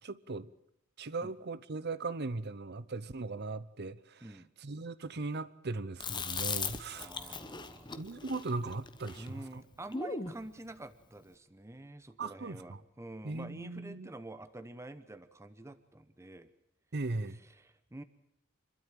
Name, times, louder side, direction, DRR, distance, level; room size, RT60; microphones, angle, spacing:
voice 1, 0.0-0.5 1.0-7.4 7.9-9.6 12.2-12.8 13.2-14.1 16.9-17.4, right 3 dB, 50° right, 0.8 m, -39 dB
Chewing mastication, 6.0-10.4, left 5 dB, 20° left, 1.0 m, -39 dB
voice 2, 7.0-7.9 9.1-16.5 17.6-18.0, right 2 dB, 15° right, 0.9 m, -48 dB
26.5 x 12.5 x 9.1 m
head